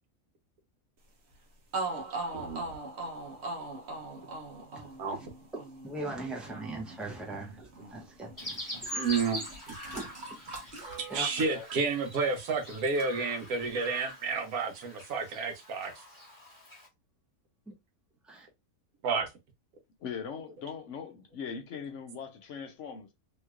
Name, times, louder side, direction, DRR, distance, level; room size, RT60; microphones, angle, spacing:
sound 1, 1.3-1.4 1.7-9.6 9.8-11.0, right 2 dB, 55° right, 1.0 m, -40 dB
voice 1, 2.3-2.6 5.0-5.2 8.9-9.5 11.1-15.9 19.0-19.3, right 4 dB, 85° right, 1.3 m, -30 dB
voice 2, 5.8-8.8 9.9-10.0 10.8-11.6 18.3-18.5, right 2 dB, ahead, 0.5 m, -40 dB
Chirp tweet, 8.4-16.9, equal, 15° left, 0.9 m, -43 dB
sound 2, 8.8-12.3 12.6-13.0 13.7-13.8, right 1 dB, 35° right, 1.2 m, -46 dB
voice 3, 20.0-23.1, left 6 dB, 65° left, 0.9 m, -40 dB
3.1 x 3.0 x 2.4 m
omnidirectional pair, 1.5 m